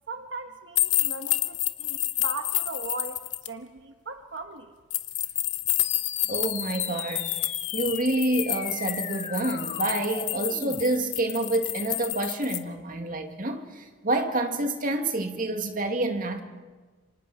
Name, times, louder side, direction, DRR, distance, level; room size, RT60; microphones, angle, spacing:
voice 1, 0.1-4.7, right 3 dB, 75° right, 1.2 m, -38 dB
sound 1, 0.8-3.5 4.9-12.6, left 15 dB, 75° left, 1.0 m, -29 dB
sound 2, 5.8-10.8, left 6 dB, 35° left, 1.2 m, -39 dB
voice 2, 6.3-7.4 7.7-16.4, right 2 dB, 45° right, 2.1 m, -28 dB
28.0 x 25.0 x 4.8 m
head